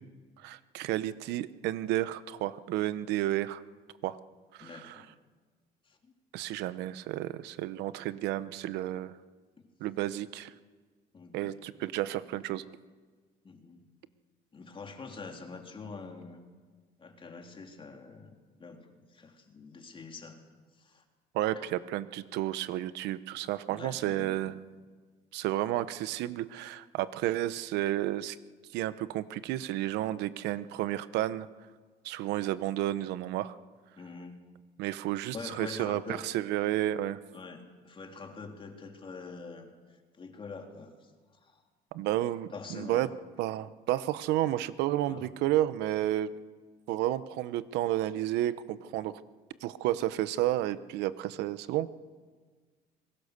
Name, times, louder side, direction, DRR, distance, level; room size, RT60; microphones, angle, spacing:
voice 1, 0.4-3.6 4.0-4.2 4.5-5.0 6.3-9.2 9.8-10.5 11.3-12.6 21.3-24.6 25.3-28.4 28.7-31.5 32.0-33.5 34.8-37.2 41.9-43.1 43.4-46.3 46.9-49.2 49.6-51.9, right 14 dB, 90° right, 15 dB, 1.0 m, -31 dB
voice 2, 4.6-5.1 5.9-6.1 11.1-11.6 13.4-13.8 14.5-16.4 17.0-20.4 20.8-21.0 21.6-21.7 23.7-24.5 34.0-34.4 35.3-36.2 37.3-39.7 40.2-41.6 42.5-43.1 45.0-45.3, left 4 dB, 30° left, 3 dB, 3.5 m, -45 dB
26.0 x 22.5 x 6.7 m, 1.4 s
cardioid pair, 110°, 17 cm